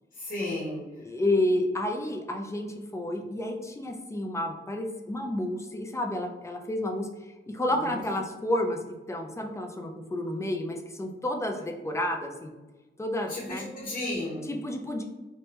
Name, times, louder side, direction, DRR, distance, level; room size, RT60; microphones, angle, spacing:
voice 1, 0.1-1.0 7.7-8.0 13.3-14.5, left 1 dB, 45° left, -7 dB, 0.9 m, -34 dB
voice 2, 1.0-7.1 7.5-8.8 9.1-12.5 13.0-13.7 14.5-15.0, left 1 dB, 15° left, 3 dB, 0.3 m, -30 dB
3.2 x 2.1 x 2.9 m, 1.1 s
wide cardioid pair, 120°, 20 cm